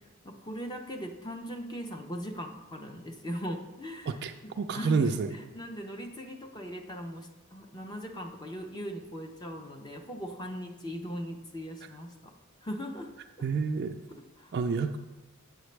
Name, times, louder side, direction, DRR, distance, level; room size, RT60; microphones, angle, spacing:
voice 1, 0.2-12.3 12.6-13.1 14.1-14.5, equal, 20° left, 4 dB, 0.5 m, -39 dB
voice 2, 4.6-5.3 13.4-14.0 14.5-15.0, right 5 dB, 50° right, 6 dB, 0.3 m, -28 dB
7.9 x 6.5 x 3.2 m, 1.1 s
head